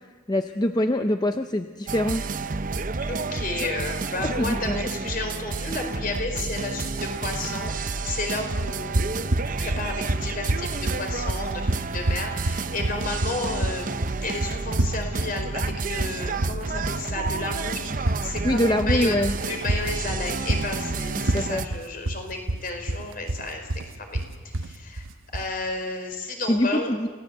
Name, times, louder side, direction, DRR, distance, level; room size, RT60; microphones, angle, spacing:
voice 1, 0.3-2.3 4.2-4.8 18.4-19.3 21.3-21.6 26.5-27.1, left 1 dB, 20° left, 7 dB, 0.6 m, -24 dB
sound 1, 1.9-21.7, right 4 dB, 40° right, 0.7 m, -30 dB
voice 2, 3.1-24.2 24.4-25.0 25.3-26.9, left 2 dB, 45° left, 4 dB, 4.7 m, -32 dB
sound 2, 8.6-25.5, right 1 dB, 85° right, 1.0 m, -28 dB
28.0 x 17.5 x 8.1 m, 1.4 s
head